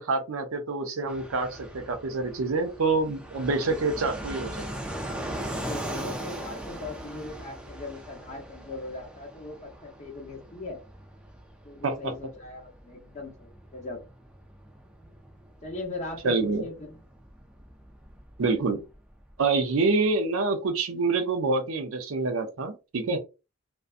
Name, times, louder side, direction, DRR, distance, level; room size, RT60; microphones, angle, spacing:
voice 1, 0.0-4.6 11.8-12.1 16.2-16.7 18.4-18.8 19.4-23.2, right 3 dB, 75° right, 0.5 m, -26 dB
Fixed-wing aircraft airplane, 1.1-19.4, right 1 dB, 5° right, 0.4 m, -40 dB
voice 2, 5.6-10.8 11.6-14.0 15.6-17.0, left 2 dB, 35° left, 0.8 m, -39 dB
2.5 x 2.2 x 2.5 m
head